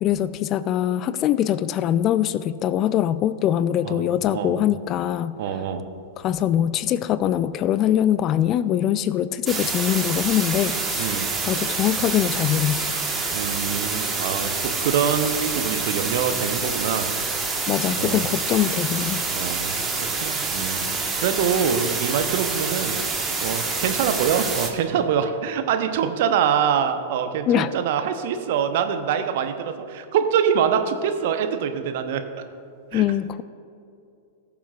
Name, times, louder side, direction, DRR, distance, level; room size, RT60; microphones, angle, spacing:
voice 1, 0.0-5.3 6.2-11.2 11.4-12.9 17.7-19.2 27.5-27.7 32.9-33.4, left 11 dB, 35° left, 15 dB, 0.3 m, -23 dB
voice 2, 5.4-5.8 11.0-11.3 13.3-17.1 18.0-18.2 19.3-23.0 23.4-32.2 32.9-33.0, right 8 dB, 55° right, 8 dB, 0.7 m, -24 dB
sound 1, 9.5-24.7, right 4 dB, 15° right, 1.3 m, -27 dB
19.0 x 7.1 x 2.4 m, 2.6 s
figure-of-eight pair, 100°, 0 cm